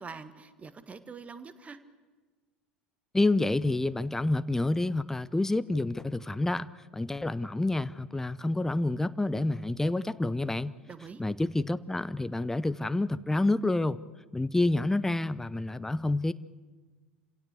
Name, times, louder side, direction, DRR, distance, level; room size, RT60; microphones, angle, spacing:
voice 1, 0.0-1.8 10.9-11.2, right 5 dB, 20° right, 12 dB, 1.5 m, -44 dB
voice 2, 3.1-10.7 11.2-14.0 14.3-16.3, left 2 dB, 5° left, 16 dB, 0.6 m, -28 dB
27.5 x 17.0 x 8.2 m, 1.4 s
figure-of-eight pair, 70°, 6 cm